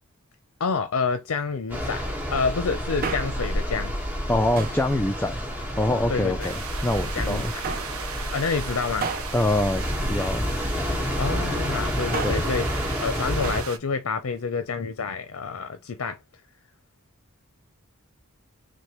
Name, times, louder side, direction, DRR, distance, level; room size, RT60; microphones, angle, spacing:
voice 1, 0.6-2.1 2.3-4.0 6.1-6.5 7.2-7.6 8.3-9.1 11.2-12.7 13.0-16.2, left 5 dB, 70° left, 0.5 m, -28 dB
sound 1, 1.7-13.6, equal, 10° right, 1.4 m, -29 dB
Male speech man speaking, 3.0-3.6 4.6-4.9 5.7-6.5 7.6-8.0 9.0-10.7 11.9-12.6 13.4-13.8 14.0-14.1, right 5 dB, 40° right, 0.5 m, -34 dB
voice 2, 4.3-5.5 5.8-7.5 9.3-9.8 10.1-10.5 12.2-12.4, left 1 dB, 10° left, 0.3 m, -24 dB
sound 2, 6.4-13.8, right 7 dB, 75° right, 0.8 m, -38 dB
6.3 x 2.2 x 2.9 m
head